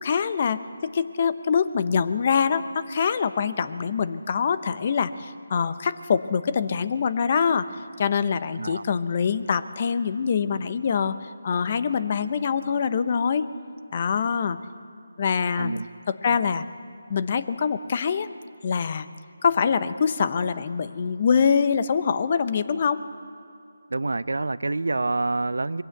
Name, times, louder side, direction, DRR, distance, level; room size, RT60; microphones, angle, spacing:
voice 1, 0.0-7.7 8.0-13.5 13.9-14.6 15.2-15.7 16.2-16.6 17.1-18.3 18.6-19.1 19.4-23.0, left 6 dB, 40° left, 13 dB, 0.8 m, -24 dB
voice 2, 23.9-25.8, right 2 dB, 75° right, 17 dB, 0.6 m, -27 dB
22.0 x 16.0 x 8.1 m, 2.5 s
figure-of-eight pair, 160°, 0 cm